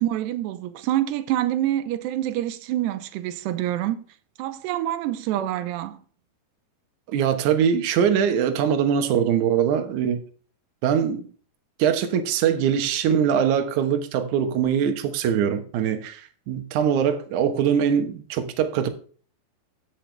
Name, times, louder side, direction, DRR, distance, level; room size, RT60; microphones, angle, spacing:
voice 1, 0.0-4.0 4.4-6.0, right 13 dB, 85° right, 3.0 m, -26 dB
voice 2, 7.1-10.2 10.8-11.3 11.8-18.9, right 8 dB, 65° right, 2.1 m, -22 dB
14.0 x 6.7 x 3.3 m
omnidirectional pair, 4.8 m